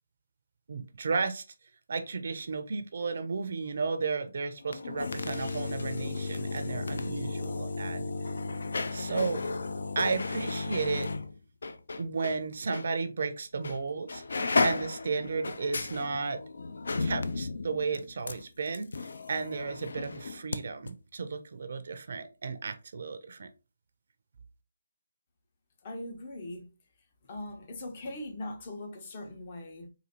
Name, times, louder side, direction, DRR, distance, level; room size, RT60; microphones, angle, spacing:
voice 1, 0.7-1.4 1.9-8.1 8.9-9.4 10.0-11.1 12.0-14.2 14.6-16.4 17.0-23.5, right 4 dB, 55° right, 0.4 m, -33 dB
sound 1, 4.6-12.4 12.7-12.9 13.6-13.8 14.1-20.6 20.9-21.0, left 3 dB, 65° left, 0.4 m, -34 dB
Hiss, 5.3-7.4, left 1 dB, 80° left, 1.3 m, -53 dB
voice 2, 25.8-26.7 27.3-29.9, left 1 dB, 35° left, 0.8 m, -40 dB
4.0 x 2.6 x 2.7 m
figure-of-eight pair, 155°, 0 cm